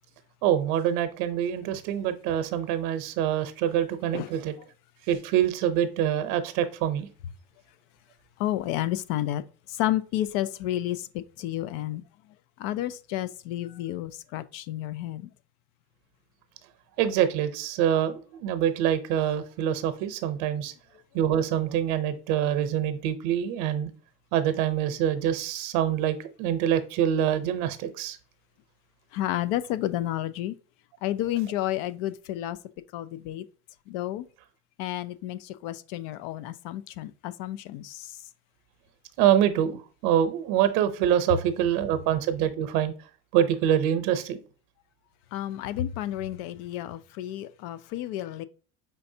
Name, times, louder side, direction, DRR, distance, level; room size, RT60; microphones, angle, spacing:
voice 1, 0.4-4.5 5.1-7.1 17.0-20.7 21.1-23.9 24.3-28.2 39.2-42.9 43.3-44.4, right 10 dB, 90° right, 0.7 m, -25 dB
voice 2, 8.4-9.4 9.7-12.0 12.6-15.3 29.1-30.6 31.0-32.6 32.9-33.4 33.9-34.2 34.8-38.1 45.3-48.4, left 13 dB, 85° left, 0.5 m, -31 dB
5.2 x 3.4 x 2.7 m
cardioid pair, 150°, 32 cm